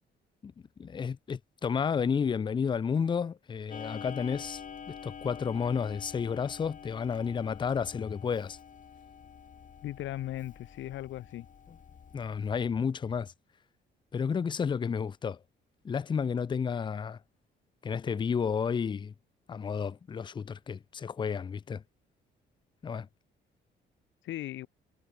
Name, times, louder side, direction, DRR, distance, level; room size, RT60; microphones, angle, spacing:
voice 1, 0.8-4.6 4.9-8.6 12.1-13.3 14.1-15.4 15.8-17.2 17.8-19.1 19.5-21.8 22.8-23.1, left 6 dB, 25° left, 0.4 m, -31 dB
Clock, 3.7-12.7, left 7 dB, 40° left, 1.1 m, -47 dB
voice 2, 9.8-11.5 24.2-24.7, left 14 dB, 75° left, 0.8 m, -37 dB
cardioid pair, 90°, 20 cm